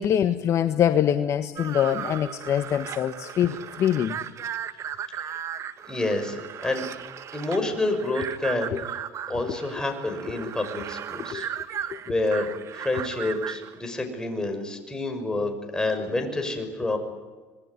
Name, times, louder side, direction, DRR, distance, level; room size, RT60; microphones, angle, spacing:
voice 1, 0.0-4.2 8.7-8.8 11.3-11.4, left 10 dB, 45° left, 8 dB, 1.4 m, -24 dB
sound 1, 1.6-13.8, right 9 dB, 45° right, 1.6 m, -36 dB
voice 2, 5.9-6.8 7.3-8.9 9.3-11.5 12.1-17.0, left 2 dB, 10° left, 4 dB, 6.1 m, -28 dB
26.5 x 20.5 x 9.7 m, 1.4 s
supercardioid pair, 105°, 7 cm